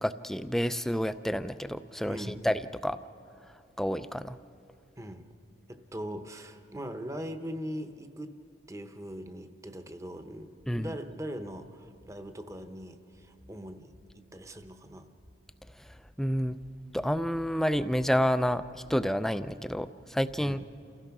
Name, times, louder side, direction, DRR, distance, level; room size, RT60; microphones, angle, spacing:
voice 1, 0.0-3.0 3.8-4.4 10.7-10.9 15.8-16.6 16.9-20.6, equal, ahead, 11 dB, 0.4 m, -29 dB
voice 2, 2.0-2.4 5.0-5.2 5.7-8.4 8.7-15.1 20.4-20.6, equal, 15° right, 8 dB, 0.9 m, -41 dB
29.0 x 15.5 x 6.0 m, 2.7 s
head